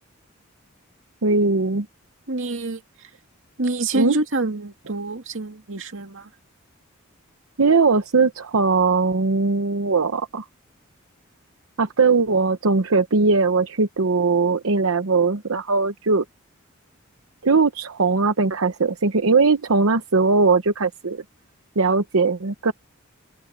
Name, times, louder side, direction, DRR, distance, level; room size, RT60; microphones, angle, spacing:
voice 1, 1.2-1.9 3.9-4.1 7.6-10.4 11.8-16.2 17.4-21.2 21.8-22.7, right 4 dB, 85° right, 0.9 m, -20 dB
voice 2, 2.3-2.8 3.6-6.3, right 2 dB, 65° right, 2.5 m, -26 dB
open air
head